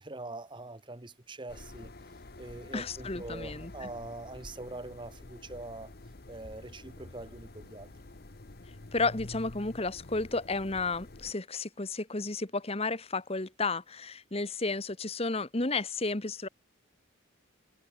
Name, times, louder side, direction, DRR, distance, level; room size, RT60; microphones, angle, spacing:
voice 1, 0.0-1.9 2.4-5.9 6.3-7.9, right 2 dB, 25° right, 1.0 m, -43 dB
sound 1, 1.5-11.3, left 2 dB, 50° left, 1.1 m, -48 dB
voice 2, 2.7-3.9 8.9-16.5, left 3 dB, 30° left, 1.3 m, -32 dB
head